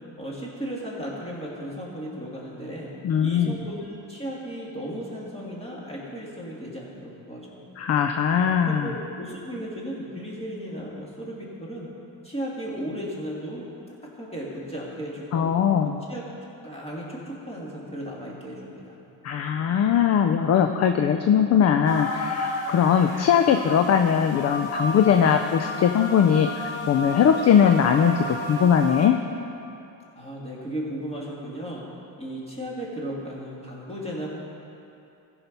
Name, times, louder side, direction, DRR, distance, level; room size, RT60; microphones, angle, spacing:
voice 1, 0.2-2.9 3.2-7.6 8.4-11.9 12.2-13.6 14.1-15.5 16.1-16.2 16.6-19.0 30.1-31.8 32.2-34.3, equal, 15° left, -5 dB, 2.6 m, -35 dB
voice 2, 3.0-3.5 7.8-8.9 15.3-16.0 19.2-29.2, left 8 dB, 35° left, 6 dB, 0.4 m, -20 dB
sound 1, 21.8-29.1, left 1 dB, 50° left, 1.6 m, -32 dB
14.5 x 5.8 x 5.4 m, 2.7 s
cardioid pair, 105°, 46 cm